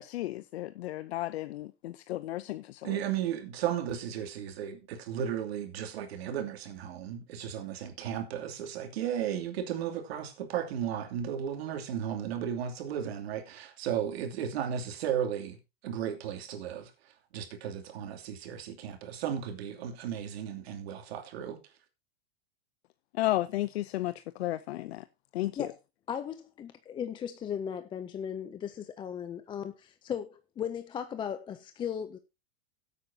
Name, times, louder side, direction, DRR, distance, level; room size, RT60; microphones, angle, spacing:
voice 1, 0.0-2.9 23.1-25.0 25.3-25.7, left 15 dB, 85° left, 0.7 m, -33 dB
voice 2, 2.8-15.6 15.8-21.6, right 9 dB, 75° right, 2.8 m, -35 dB
voice 3, 26.1-32.2, left 8 dB, 15° left, 0.5 m, -37 dB
16.0 x 8.4 x 2.7 m
supercardioid pair, 150°, 31 cm